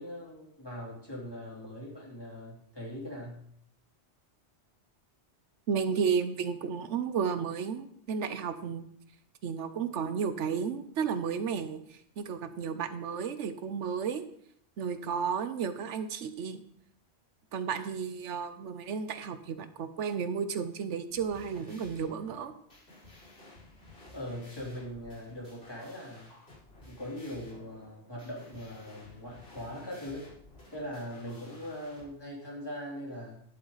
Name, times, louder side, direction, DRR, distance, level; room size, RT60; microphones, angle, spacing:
voice 1, 0.0-3.4 24.1-26.3 26.9-30.3 30.7-33.4, equal, 20° left, -5 dB, 3.5 m, -41 dB
voice 2, 5.7-8.9 9.4-14.2 14.8-16.6 17.5-22.5, right 6 dB, 85° right, 11 dB, 1.1 m, -33 dB
sound 1, 21.1-32.0, left 2 dB, 60° left, 5.2 m, -54 dB
11.5 x 7.9 x 4.0 m, 0.68 s
omnidirectional pair, 1.2 m